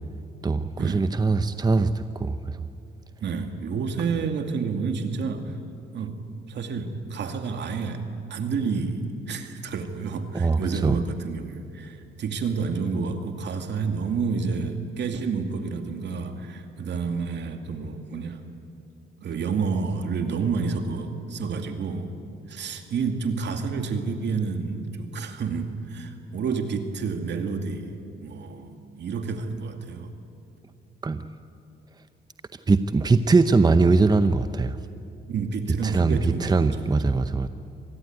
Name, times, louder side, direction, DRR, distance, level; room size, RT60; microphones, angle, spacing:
voice 1, 0.4-2.6 10.3-11.0 31.0-31.2 32.7-34.8 35.8-37.5, right 3 dB, 20° right, 11 dB, 0.8 m, -21 dB
voice 2, 3.2-5.5 5.9-6.2 6.5-8.0 8.3-18.4 19.2-22.1 22.5-27.9 28.2-30.1 31.2-31.3 35.3-37.1, right 5 dB, 60° right, 6 dB, 2.4 m, -29 dB
25.5 x 19.5 x 9.5 m, 2.5 s
cardioid pair, 90°, 20 cm